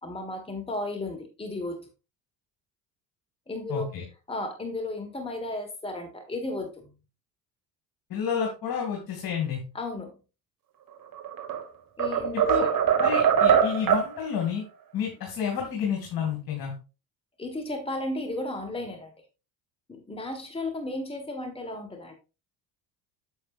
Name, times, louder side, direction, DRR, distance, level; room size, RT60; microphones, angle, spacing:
voice 1, 0.0-1.9 3.5-3.9 4.3-6.9 9.7-10.2 12.0-12.8 17.4-19.1 19.9-22.1, left 2 dB, 10° left, 4 dB, 1.5 m, -34 dB
voice 2, 3.7-4.0 8.1-9.6 12.4-12.6 13.0-14.6 14.9-16.7, left 7 dB, 45° left, 0 dB, 2.5 m, -30 dB
sound 1, 11.1-11.6 12.0-14.1, right 8 dB, 40° right, 1.7 m, -22 dB
9.4 x 7.1 x 2.5 m, 0.31 s
figure-of-eight pair, 60°, 50 cm